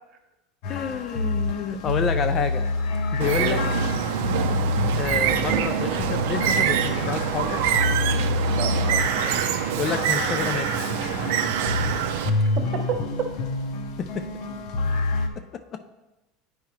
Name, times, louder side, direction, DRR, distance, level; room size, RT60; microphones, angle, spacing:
sound 1, 0.6-15.3, left 3 dB, 60° left, 0.8 m, -27 dB
voice 1, 0.7-2.6 3.1-3.6 5.0-7.6 9.8-10.8 14.0-14.3 15.5-15.9, left 7 dB, 30° left, 9 dB, 0.3 m, -29 dB
Bird, 3.2-12.3, right 9 dB, 80° right, 0.5 m, -25 dB
voice 2, 8.5-9.4 12.5-13.0, right 6 dB, 45° right, 5 dB, 0.9 m, -31 dB
9.3 x 4.8 x 3.1 m, 1.0 s
cardioid pair, 155°, 0 cm